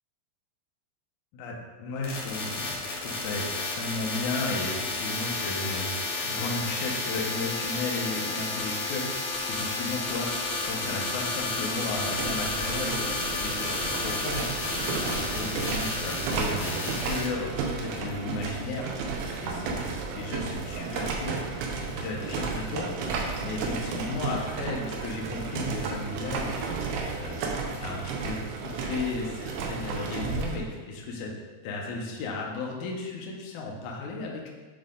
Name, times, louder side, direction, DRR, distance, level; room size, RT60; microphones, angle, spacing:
voice 1, 1.3-5.9 6.2-18.9 19.4-26.8 27.1-27.5 27.8-31.3 31.6-34.5, left 3 dB, 85° left, -2 dB, 1.7 m, -35 dB
sound 1, 2.0-17.3, left 3 dB, 65° left, 1.7 m, -32 dB
sound 2, 11.8-30.6, right 4 dB, 75° right, 2.3 m, -33 dB
10.5 x 3.8 x 3.7 m, 1.3 s
omnidirectional pair, 5.0 m